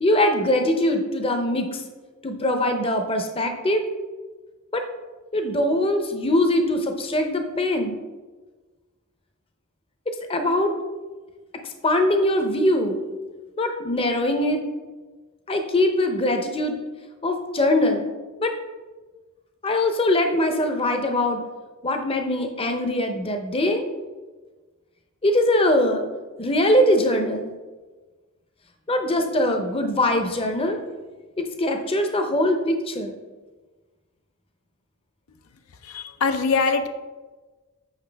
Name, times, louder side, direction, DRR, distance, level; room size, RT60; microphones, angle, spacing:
voice 1, 0.0-1.8 2.2-3.8 4.7-4.8 5.3-8.0 10.1-10.7 11.8-13.0 13.6-14.6 15.5-16.8 17.2-18.1 18.4-18.5 19.6-21.4 21.8-23.8 25.2-26.0 26.4-27.5 28.9-30.8 31.4-33.2, left 1 dB, 25° left, 5 dB, 0.6 m, -22 dB
voice 2, 35.8-36.9, left 4 dB, 80° left, 7 dB, 0.5 m, -23 dB
8.1 x 5.6 x 3.4 m, 1.3 s
head